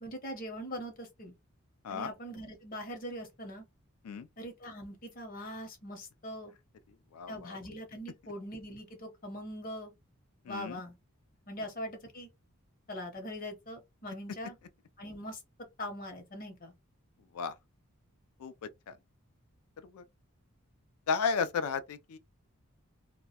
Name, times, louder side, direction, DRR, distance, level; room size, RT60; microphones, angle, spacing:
voice 1, 0.0-1.3 1.9-3.6 4.4-6.5 7.3-9.9 10.5-10.9 11.5-12.3 12.9-14.5 15.0-15.4 15.8-16.7, equal, 40° left, 0.7 m, -42 dB
voice 2, 7.1-7.6 10.4-10.8 17.3-17.6 18.4-19.0 19.8-20.0 21.1-22.2, left 5 dB, 80° left, 0.3 m, -34 dB
2.2 x 2.1 x 2.7 m
head